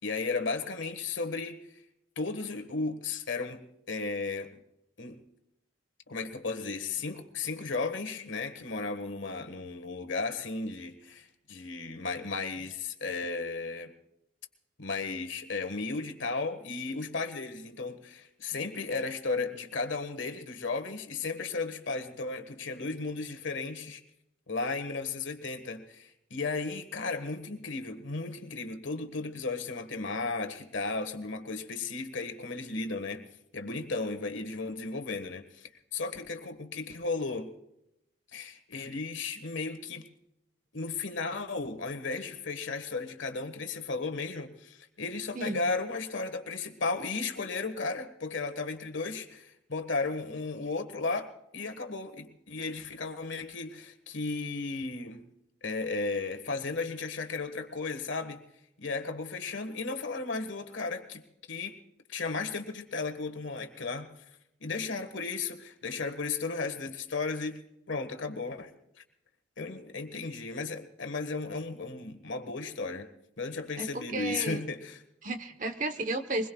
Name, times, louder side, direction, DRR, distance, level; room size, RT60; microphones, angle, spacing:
voice 1, 0.0-1.6 2.2-3.6 3.9-4.6 5.0-5.2 6.1-13.9 14.8-24.0 24.5-33.2 33.5-37.5 38.3-40.0 40.7-55.2 55.6-58.4 58.8-61.2 61.5-61.7 62.1-64.1 64.6-67.6 67.9-68.7 69.0-69.1 69.6-73.1 73.4-75.0, left 3 dB, 75° left, 6 dB, 1.6 m, -35 dB
voice 2, 73.8-74.6 75.2-76.5, right 2 dB, 40° right, 9 dB, 1.1 m, -33 dB
23.5 x 21.0 x 2.4 m, 0.80 s
head